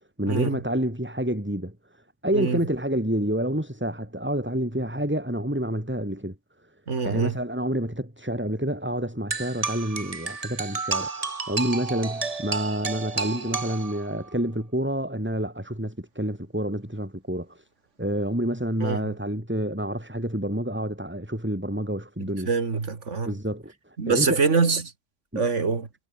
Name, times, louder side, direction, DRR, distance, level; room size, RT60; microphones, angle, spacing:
voice 1, 0.2-6.4 7.0-17.6 18.0-22.5 23.2-24.5 25.3-25.5, right 1 dB, 5° right, 4.2 m, -28 dB
voice 2, 6.9-7.3 18.8-19.0 22.5-23.3 24.0-24.8 25.4-25.9, right 4 dB, 50° right, 2.4 m, -24 dB
sound 1, 9.3-14.3, right 4 dB, 25° right, 1.1 m, -31 dB
omnidirectional pair, 1.7 m